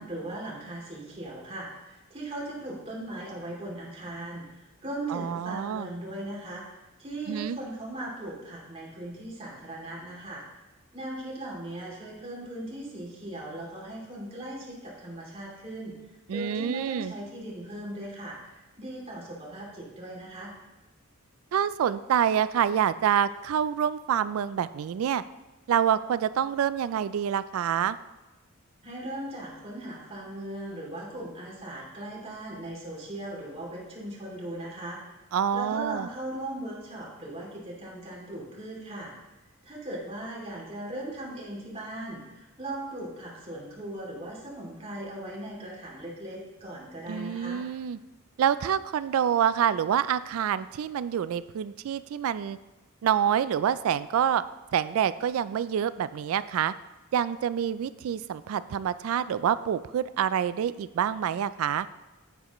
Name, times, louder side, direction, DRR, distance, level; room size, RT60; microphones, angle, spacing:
voice 1, 0.0-6.6 7.0-10.4 10.9-16.0 16.3-20.5 28.8-35.0 35.5-39.1 39.6-47.6, right 1 dB, 30° right, -3 dB, 2.6 m, -38 dB
voice 2, 5.1-5.9 7.3-7.6 16.3-17.1 21.5-25.2 25.7-28.0 35.3-36.1 47.1-48.0 48.4-52.6 53.0-54.4 54.7-56.7 57.1-61.9, right 9 dB, 75° right, 16 dB, 0.3 m, -27 dB
9.4 x 8.8 x 3.1 m, 1.1 s
head